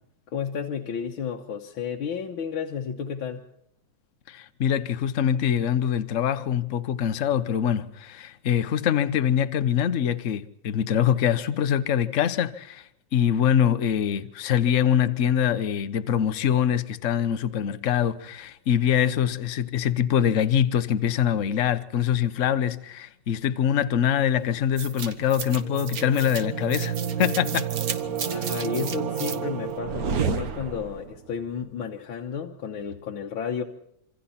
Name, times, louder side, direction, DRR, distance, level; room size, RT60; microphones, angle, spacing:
voice 1, 0.3-3.4 28.2-33.6, left 7 dB, 75° left, 2.0 m, -32 dB
voice 2, 4.3-12.8 13.1-27.7, left 9 dB, 50° left, 1.1 m, -24 dB
sound 1, 24.8-31.1, right 7 dB, 50° right, 1.6 m, -30 dB
27.0 x 25.5 x 4.3 m
omnidirectional pair, 2.3 m